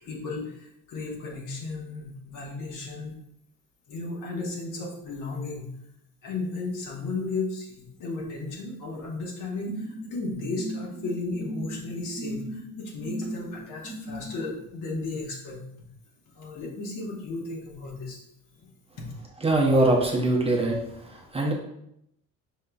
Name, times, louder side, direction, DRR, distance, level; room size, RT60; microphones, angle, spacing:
voice 1, 0.0-0.5 0.9-3.1 3.9-5.7 6.2-15.6 16.3-18.2 18.6-18.7 19.0-19.1, left 3 dB, 65° left, -1 dB, 1.3 m, -34 dB
sound 1, 9.7-14.5, right 1 dB, 5° left, 1.1 m, -37 dB
voice 2, 19.4-20.8 21.1-21.5, right 2 dB, 20° right, -1 dB, 0.7 m, -22 dB
5.2 x 3.7 x 2.3 m, 0.79 s
cardioid pair, 125°, 33 cm